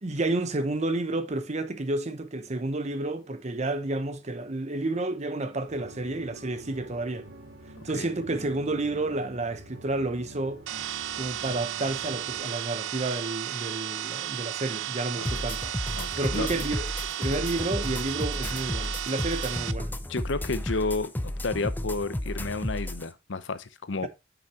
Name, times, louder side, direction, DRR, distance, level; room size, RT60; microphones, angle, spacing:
voice 1, 0.0-7.3 7.8-10.6 11.2-15.6 16.2-16.9 17.2-19.9 24.0-24.1, right 2 dB, 35° right, 0.8 m, -30 dB
sound 1, 5.7-12.4, right 1 dB, 70° right, 2.0 m, -47 dB
sound 2, 10.7-19.7, right 11 dB, 85° right, 0.5 m, -34 dB
sound 3, 15.2-23.0, left 1 dB, 10° left, 0.4 m, -33 dB
voice 2, 16.0-16.6 20.1-24.1, left 3 dB, 75° left, 0.7 m, -31 dB
8.2 x 6.0 x 2.8 m
head